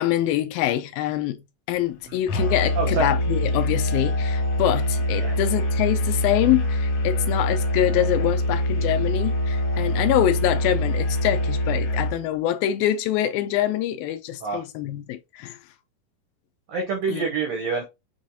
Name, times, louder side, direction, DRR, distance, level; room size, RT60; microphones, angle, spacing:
voice 1, 0.0-15.6 17.1-17.2, left 12 dB, 80° left, 2.4 m, -25 dB
Musical instrument, 2.3-12.2, left 1 dB, 60° left, 2.7 m, -24 dB
voice 2, 16.7-17.8, right 5 dB, 80° right, 1.5 m, -27 dB
6.3 x 3.1 x 2.7 m
omnidirectional pair, 4.2 m